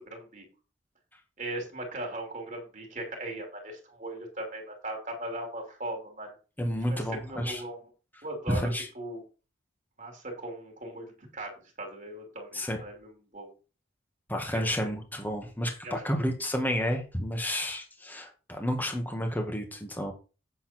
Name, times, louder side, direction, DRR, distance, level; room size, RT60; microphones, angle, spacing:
voice 1, 0.0-0.4 1.4-6.3 6.9-7.8 8.2-8.7 8.9-9.2 10.0-11.5 11.8-13.5 14.5-14.9 15.8-16.0, right 1 dB, 40° right, 3 dB, 2.9 m, -38 dB
voice 2, 6.6-7.6 8.5-8.9 12.5-12.8 14.3-20.1, equal, 10° left, 3 dB, 1.9 m, -31 dB
8.5 x 7.2 x 4.4 m, 0.33 s
head